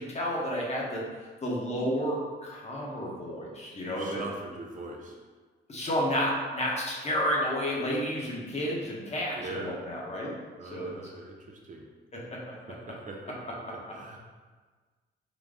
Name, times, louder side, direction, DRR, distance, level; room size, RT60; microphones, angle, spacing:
voice 1, 0.0-4.2 5.7-10.3 10.7-10.9 12.1-12.4, equal, 35° left, -4 dB, 1.0 m, -31 dB
voice 2, 3.9-5.2 9.4-9.8 10.6-11.9 12.7-13.6 13.9-14.2, right 2 dB, 40° right, 0 dB, 0.5 m, -41 dB
3.9 x 2.2 x 3.5 m, 1.4 s
cardioid pair, 90°, 20 cm